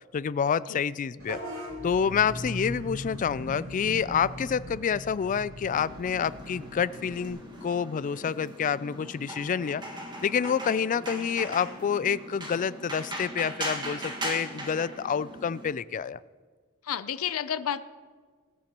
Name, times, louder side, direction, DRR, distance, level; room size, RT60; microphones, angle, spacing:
voice 1, 0.1-1.4 1.8-9.8 10.2-16.2, left 7 dB, 35° left, 18 dB, 0.3 m, -28 dB
Vehicle horn car horn honking / Bus, 1.2-7.3, equal, 70° right, 3.4 m, -39 dB
sound 1, 5.7-15.7, equal, 20° right, 1.7 m, -39 dB
voice 2, 16.8-17.8, left 9 dB, 80° left, 13 dB, 0.6 m, -30 dB
19.5 x 13.0 x 3.0 m, 1.5 s
head